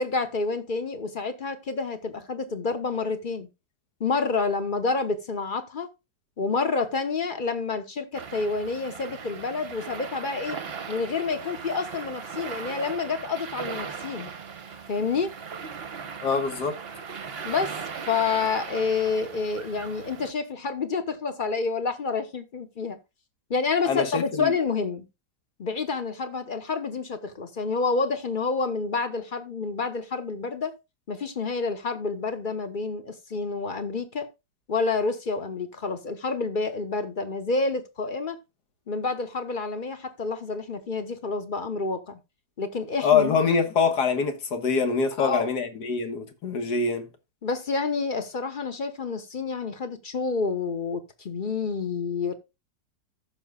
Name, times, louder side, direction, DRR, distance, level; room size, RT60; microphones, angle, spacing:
voice 1, 0.0-3.5 4.0-5.9 6.4-10.6 10.9-14.3 14.9-15.3 17.4-17.8 18.1-23.0 23.5-25.0 25.6-30.7 31.1-34.3 34.7-38.4 38.9-42.2 42.6-43.4 45.2-45.5 47.4-52.3, left 4 dB, 35° left, 1.0 m, -28 dB
sound 1, 8.1-20.3, right 6 dB, 40° right, 1.0 m, -38 dB
voice 2, 16.2-16.8 23.9-24.5 43.0-47.1, left 5 dB, 65° left, 1.9 m, -24 dB
14.5 x 6.2 x 2.3 m
omnidirectional pair, 1.9 m